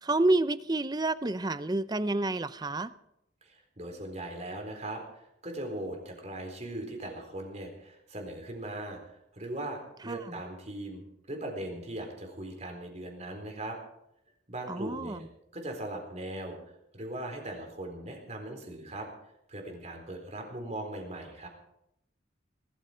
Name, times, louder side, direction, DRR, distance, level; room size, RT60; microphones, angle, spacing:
voice 1, 0.0-2.9 10.1-10.4 14.7-15.2, right 2 dB, 20° right, 14 dB, 0.6 m, -29 dB
voice 2, 3.4-13.8 14.5-15.3 15.5-16.6 16.9-19.1 19.5-21.5, right 1 dB, 35° right, 3 dB, 4.1 m, -39 dB
20.0 x 13.5 x 5.1 m, 0.81 s
head